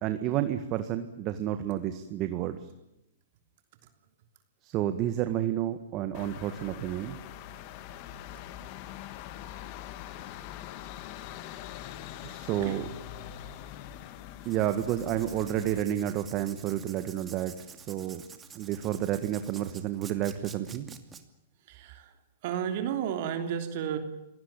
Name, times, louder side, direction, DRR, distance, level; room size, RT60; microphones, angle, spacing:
voice 1, 0.0-2.6 4.6-7.2 12.2-12.9 14.5-18.2 18.6-20.9, right 11 dB, 35° right, 9 dB, 1.7 m, -30 dB
sound 1, 6.1-15.8, left 11 dB, 45° left, 2.0 m, -43 dB
Writing, 14.4-21.2, right 6 dB, 15° right, 2.5 m, -49 dB
voice 2, 21.7-22.1 22.4-24.0, right 9 dB, 55° right, 7 dB, 3.2 m, -32 dB
27.0 x 18.0 x 9.0 m, 0.91 s
hypercardioid pair, 135°, 0 cm